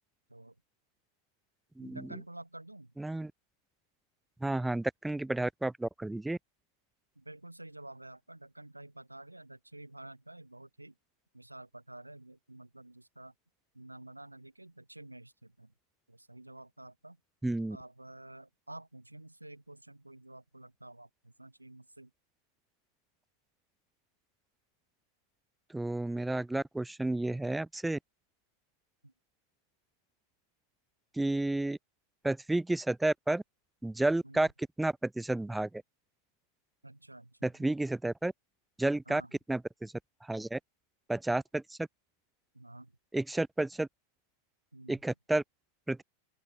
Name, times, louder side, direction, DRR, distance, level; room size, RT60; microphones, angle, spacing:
voice 1, 1.8-2.9 7.2-10.9 11.3-13.3 13.7-15.7 16.1-17.2 17.7-22.1 29.0-29.1 34.2-34.5 36.8-37.5 39.1-39.4 42.5-42.9 44.7-44.9, right 1 dB, 85° right, 7.6 m, -50 dB
voice 2, 3.0-3.3 4.4-6.4 17.4-17.8 25.7-28.0 31.2-31.8 32.2-33.4 33.8-34.5 34.8-35.7 37.4-38.3 38.8-39.2 39.5-39.9 40.3-40.6 41.1-41.6 43.1-43.9 44.9-45.4 45.9-46.0, right 2 dB, 5° right, 0.8 m, -31 dB
open air
figure-of-eight pair, 90°, 0 cm